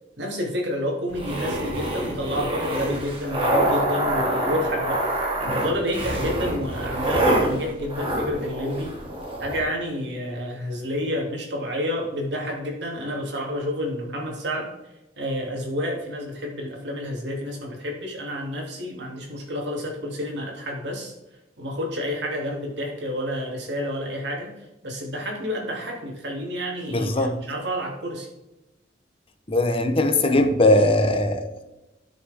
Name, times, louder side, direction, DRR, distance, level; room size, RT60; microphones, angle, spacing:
voice 1, 0.2-5.0 5.4-8.9 9.4-14.7 15.2-21.1 21.6-24.5 24.8-28.3, equal, 70° right, 0 dB, 2.6 m, -29 dB
sound 1, 1.1-9.6, right 1 dB, 30° right, 2.4 m, -26 dB
voice 2, 26.9-27.4 29.5-31.6, left 1 dB, 30° left, 7 dB, 0.9 m, -20 dB
12.5 x 6.6 x 3.6 m, 0.97 s
head